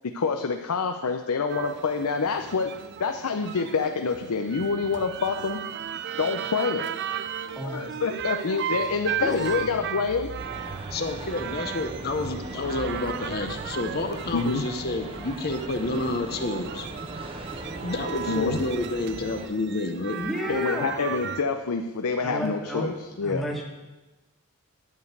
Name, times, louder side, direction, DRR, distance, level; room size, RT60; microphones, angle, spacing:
voice 1, 0.0-2.7 3.0-5.6 6.2-6.9 7.6-10.3 14.3-14.6 18.3-18.6 20.5-23.4, left 4 dB, 90° left, 5 dB, 0.6 m, -27 dB
sound 1, 1.5-21.4, right 9 dB, 50° right, 0.4 m, -36 dB
voice 2, 7.5-7.9 9.2-9.5 20.1-20.9 22.2-22.9 23.2-23.6, left 1 dB, ahead, -2 dB, 1.4 m, -32 dB
sound 2, 10.4-19.5, right 2 dB, 25° right, 0.9 m, -39 dB
voice 3, 10.9-16.9 17.8-20.2, left 2 dB, 45° left, 6 dB, 0.7 m, -29 dB
9.7 x 5.2 x 8.0 m, 1.1 s
head